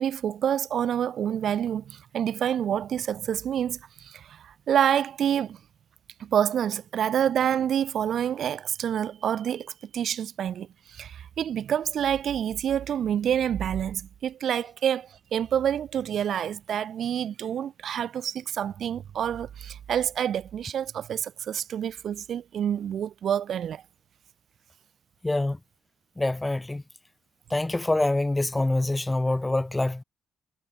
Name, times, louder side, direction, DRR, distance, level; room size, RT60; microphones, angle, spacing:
voice 1, 0.0-5.6 6.2-23.8, right 9 dB, 65° right, 1.8 m, -27 dB
voice 2, 25.2-25.6 26.2-26.8 27.5-30.0, left 2 dB, 15° left, 0.9 m, -25 dB
cardioid pair, 90°, 0 cm